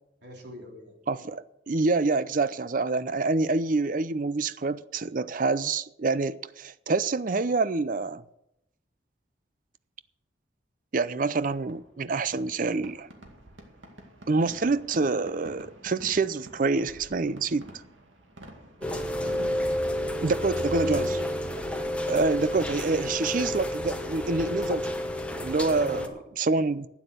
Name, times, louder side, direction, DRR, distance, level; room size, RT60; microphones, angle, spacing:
voice 1, 0.2-1.0 18.8-19.7 20.8-21.6 25.7-26.7, equal, 60° right, 3.4 m, -43 dB
voice 2, 1.1-8.2 10.9-13.1 14.3-17.6 20.2-21.0 22.1-24.9 25.4-26.0 26.4-26.9, right 3 dB, 45° right, 0.5 m, -26 dB
Fireworks, 11.5-25.0, right 1 dB, 80° right, 2.2 m, -49 dB
Rain, 18.8-26.1, left 1 dB, 5° left, 1.0 m, -30 dB
12.0 x 9.3 x 6.7 m
head